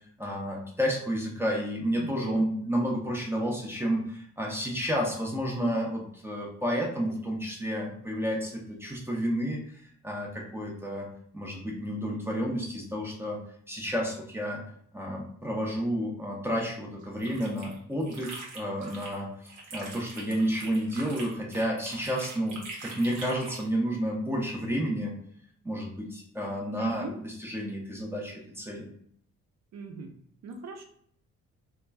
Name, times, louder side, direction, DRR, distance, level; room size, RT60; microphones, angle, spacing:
voice 1, 0.2-9.6 10.0-11.1 11.3-13.4 13.7-14.6 14.9-25.1 25.6-27.0 27.5-28.9, equal, 10° right, -1 dB, 0.6 m, -31 dB
voice 2, 2.0-2.7 26.8-27.2 29.7-30.2 30.4-30.8, right 4 dB, 60° right, 4 dB, 0.6 m, -40 dB
sound 1, 17.0-19.2 19.5-23.7, right 3 dB, 80° right, 0.9 m, -43 dB
2.9 x 2.2 x 2.2 m, 0.63 s
cardioid pair, 90°, 30 cm